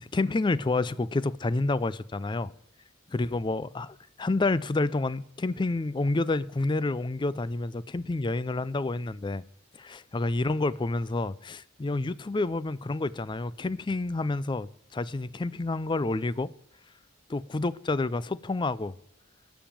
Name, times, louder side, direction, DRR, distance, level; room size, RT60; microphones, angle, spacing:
voice 1, 0.0-2.5 3.1-9.4 9.7-16.5 17.3-19.0, left 2 dB, 25° left, 0.4 m, -29 dB
12.0 x 7.2 x 7.4 m
head